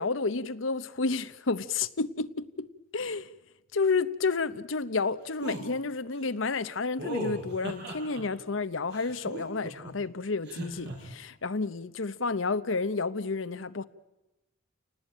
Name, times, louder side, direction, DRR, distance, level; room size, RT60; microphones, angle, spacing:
voice 1, 0.0-2.7 2.9-3.3 3.7-13.8, left 4 dB, 85° left, 0.9 m, -30 dB
sound 1, 5.4-5.6 7.0-8.2 8.9-9.9 10.4-10.9, right 1 dB, 60° right, 7.5 m, -37 dB
29.0 x 19.0 x 9.0 m
head